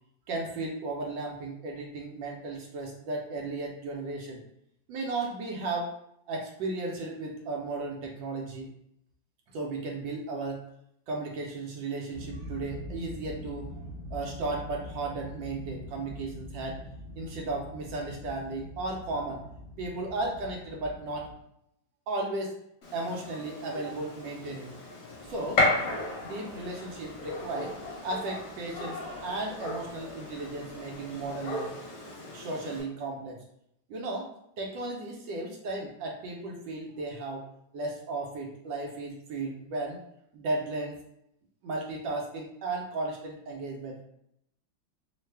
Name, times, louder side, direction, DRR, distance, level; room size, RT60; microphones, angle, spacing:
voice 1, 0.3-4.4 4.9-5.9 6.3-8.7 9.5-10.6 11.1-13.8 14.1-16.8 17.2-19.4 19.8-21.3 22.1-22.5 22.9-24.7 25.3-25.7 26.2-27.7 28.0-31.7 32.3-33.4 33.9-34.3 34.6-37.4 37.7-40.0 40.3-41.0 41.6-44.0, right 2 dB, 75° right, 0 dB, 1.2 m, -35 dB
sound 1, 12.1-21.3, left 1 dB, 35° right, 0.8 m, -43 dB
Gunshot gunfire, 22.8-32.8, left 2 dB, 50° left, 1.1 m, -34 dB
sound 2, 25.2-31.7, left 1 dB, 25° left, 0.7 m, -50 dB
3.2 x 2.1 x 3.2 m, 0.76 s
omnidirectional pair, 2.1 m